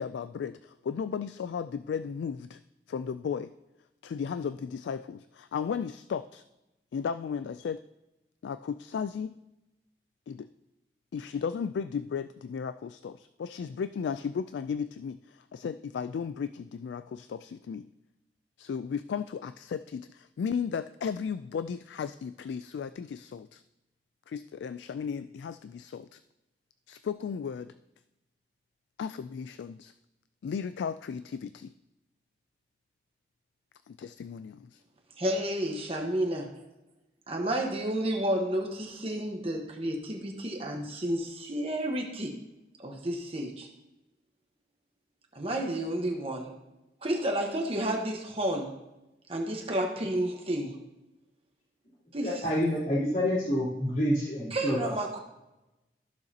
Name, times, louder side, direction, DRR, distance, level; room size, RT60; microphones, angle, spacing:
voice 1, 0.0-2.6 2.9-3.5 4.0-6.4 6.9-7.8 8.4-9.4 10.3-10.5 11.1-17.9 18.6-23.6 24.3-26.2 26.9-27.7 29.0-29.9 30.4-31.7 33.9-34.8, left 6 dB, 85° left, 13 dB, 0.3 m, -35 dB
voice 2, 35.2-36.5 37.3-42.3 42.8-43.7 45.3-46.5 47.0-48.7 49.3-50.8 52.1-52.4 54.5-55.2, right 1 dB, 35° right, 1 dB, 1.2 m, -31 dB
voice 3, 52.2-54.9, left 1 dB, 50° left, -8 dB, 3.3 m, -28 dB
14.5 x 6.5 x 2.8 m, 0.97 s
head